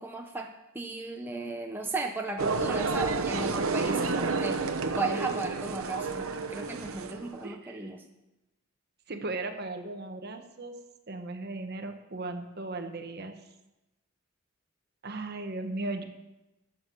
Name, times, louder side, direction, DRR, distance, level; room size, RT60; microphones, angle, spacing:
voice 1, 0.0-8.0, right 2 dB, 10° right, 2 dB, 0.7 m, -35 dB
sound 1, 2.4-7.4, right 4 dB, 75° right, 0.9 m, -30 dB
voice 2, 7.4-8.0 9.1-10.8 11.1-13.5 15.0-16.0, right 2 dB, 50° right, 6 dB, 1.2 m, -37 dB
13.5 x 7.2 x 6.3 m, 0.98 s
head